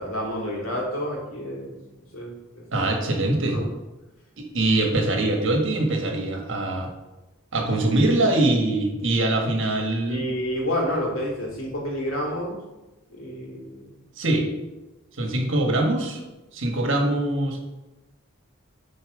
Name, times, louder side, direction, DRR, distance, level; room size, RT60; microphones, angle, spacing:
voice 1, 0.0-1.8 2.1-2.6 3.5-3.7 10.1-12.6 13.1-13.9, equal, 85° left, -2 dB, 2.5 m, -29 dB
voice 2, 2.7-3.7 4.4-6.9 7.5-10.2 14.2-14.5 15.2-16.2 16.5-17.6, right 2 dB, 65° right, 2 dB, 1.5 m, -23 dB
9.0 x 4.4 x 5.0 m, 1.0 s
head